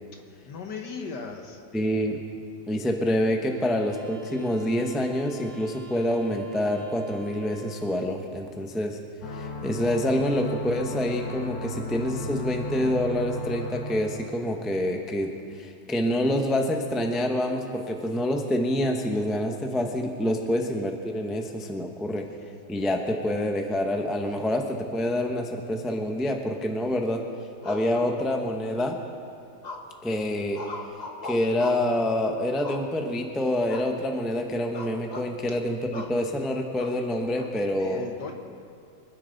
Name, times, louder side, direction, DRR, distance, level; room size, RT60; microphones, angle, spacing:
voice 1, 0.2-1.6 37.8-38.3, left 4 dB, 65° left, 3 dB, 1.8 m, -37 dB
voice 2, 1.7-2.2 2.7-9.0 9.3-22.3 22.7-27.2 27.6-29.0 30.0-30.6 31.2-38.0, left 1 dB, ahead, 3 dB, 0.6 m, -27 dB
sound 1, 3.3-8.3, right 3 dB, 80° right, 2.2 m, -49 dB
sound 2, 9.2-14.6, left 1 dB, 85° left, 1.9 m, -35 dB
sound 3, 27.6-28.7 29.6-30.1 30.5-32.0 32.6-33.2 33.7-33.9 34.2-34.4 34.7-35.3 35.9-36.2 36.8-37.5, left 2 dB, 35° left, 0.7 m, -39 dB
25.0 x 10.0 x 4.0 m, 2.4 s
omnidirectional pair, 2.0 m